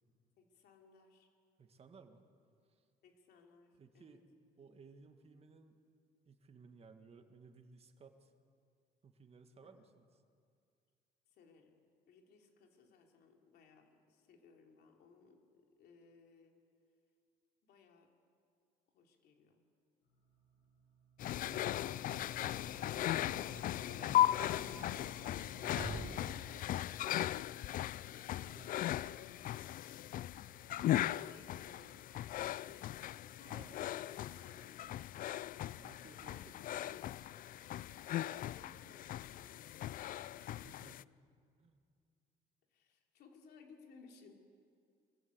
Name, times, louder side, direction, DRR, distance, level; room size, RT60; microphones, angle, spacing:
voice 1, 0.4-1.3 3.0-4.2 9.6-9.8 11.3-11.8 12.1-16.6 17.6-18.1 18.9-19.6 31.1-35.1 38.1-40.7 42.7-44.3, left 5 dB, 70° left, 2 dB, 3.2 m, -63 dB
voice 2, 1.6-2.3 2.7-2.8 3.8-4.2 4.6-5.8 6.3-8.3 9.0-10.1 21.2-24.8 28.4-29.0 32.7-32.8 33.5-33.8 35.7-37.0 40.6-41.0 41.6-41.8, right 5 dB, 35° right, 6 dB, 1.8 m, -59 dB
sound 1, 20.0-37.4, right 3 dB, 90° left, 7.1 m, -72 dB
sound 2, 21.2-41.0, left 13 dB, 55° left, 0.4 m, -38 dB
Sliding door / Slam, 22.2-26.8, right 3 dB, 55° right, 3.4 m, -50 dB
23.5 x 15.0 x 8.0 m, 2.3 s
cardioid pair, 110°, 17 cm